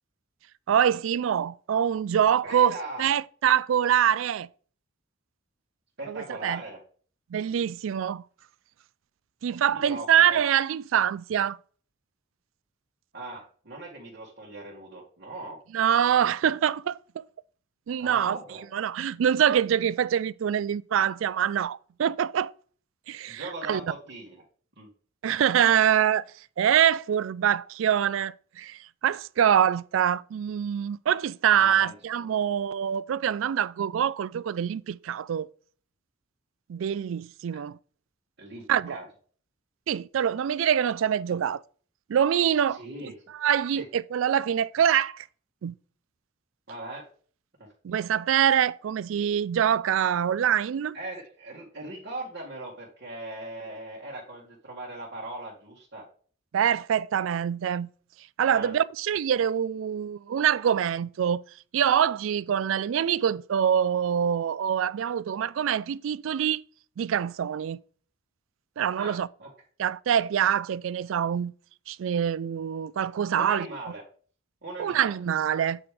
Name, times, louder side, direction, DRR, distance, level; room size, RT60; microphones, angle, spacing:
voice 1, 0.7-4.5 6.1-6.6 7.3-8.2 9.4-11.6 15.7-17.0 17.9-18.4 18.7-22.5 23.1-23.8 25.2-26.3 26.6-35.5 36.7-37.8 38.7-39.0 39.9-41.6 42.1-45.3 45.6-45.7 47.8-51.0 56.5-57.9 58.4-61.4 61.7-66.6 67.0-67.8 68.8-69.3 69.8-71.5 71.9-73.7 74.8-75.8, right 9 dB, 75° right, 0.3 m, -25 dB
voice 2, 2.4-3.1 6.0-6.8 9.7-10.4 13.1-15.6 18.0-18.6 23.3-24.4 24.8-24.9 31.6-32.3 37.5-37.6 38.4-38.6 38.9-39.1 42.7-43.1 43.7-43.8 46.7-47.0 50.9-56.0 58.5-58.7 69.0-69.5 73.3-74.0 74.6-75.2, right 2 dB, 60° right, 2.0 m, -39 dB
8.4 x 4.9 x 3.5 m
head